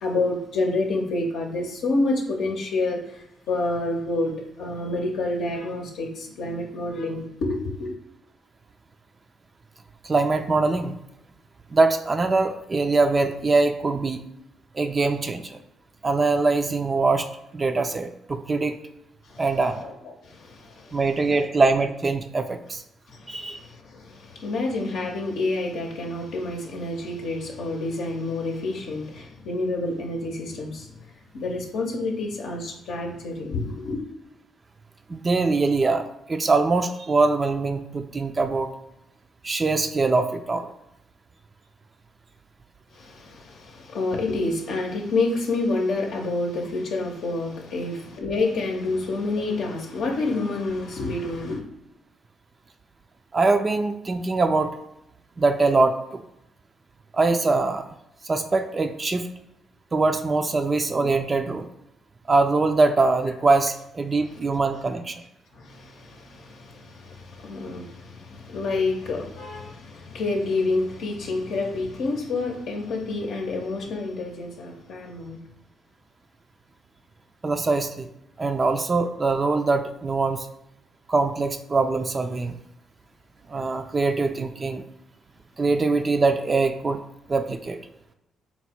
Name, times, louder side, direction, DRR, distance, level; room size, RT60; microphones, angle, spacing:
voice 1, 0.0-7.9 19.2-19.4 19.8-19.9 20.2-21.0 23.1-30.9 31.3-34.0 42.9-51.6 65.5-75.4, left 2 dB, 80° left, 0 dB, 0.7 m, -28 dB
voice 2, 10.0-11.0 11.7-14.2 14.7-15.6 16.0-17.3 17.5-18.8 19.4-19.8 20.9-22.8 23.3-23.6 35.1-38.7 39.4-40.7 53.3-54.8 55.4-56.2 57.1-57.9 58.2-59.3 59.9-61.7 62.3-65.2 77.4-78.1 78.4-80.5 81.1-82.6 83.5-84.8 85.6-87.0 87.3-87.8, right 3 dB, 30° right, 7 dB, 0.3 m, -23 dB
4.1 x 2.1 x 4.3 m, 0.83 s
cardioid pair, 90°, 0 cm